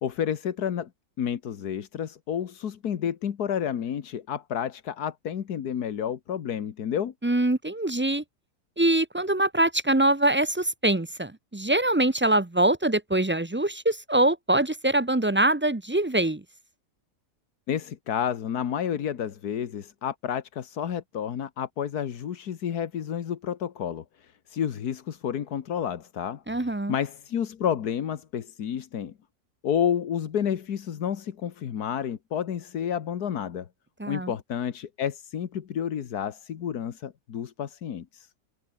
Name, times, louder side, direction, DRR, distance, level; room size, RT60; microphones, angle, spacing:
voice 1, 0.0-0.9 1.2-7.1 17.7-26.4 26.9-29.1 29.6-33.7 34.1-38.3, left 8 dB, 90° left, 1.8 m, -30 dB
voice 2, 7.2-8.2 8.8-16.4 26.5-27.0 34.0-34.3, right 1 dB, 15° right, 0.4 m, -24 dB
omnidirectional pair, 1.6 m